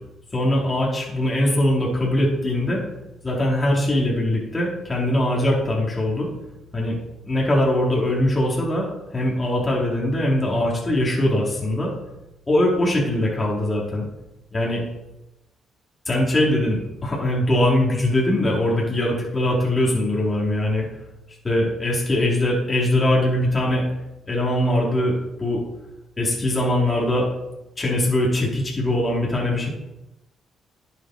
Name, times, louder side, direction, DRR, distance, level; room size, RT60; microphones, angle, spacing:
voice 1, 0.3-2.8 3.2-6.3 6.7-7.0 7.3-8.9 9.1-11.9 12.5-14.0 14.5-14.8 16.1-20.9 21.4-23.8 24.3-25.6 26.2-27.3 27.8-29.7, left 1 dB, 25° left, -3 dB, 4.4 m, -21 dB
11.0 x 9.2 x 4.9 m, 0.93 s
cardioid pair, 90°, 0 cm